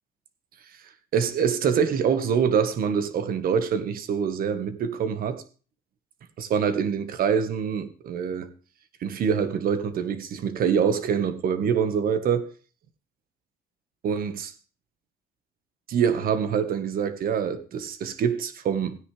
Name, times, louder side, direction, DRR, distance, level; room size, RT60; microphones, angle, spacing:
voice 1, 1.1-5.4 6.4-8.5 9.0-12.5 14.0-14.5 15.9-19.1, right 7 dB, 60° right, 1.5 m, -25 dB
16.0 x 9.7 x 3.3 m
cardioid pair, 110°, 17 cm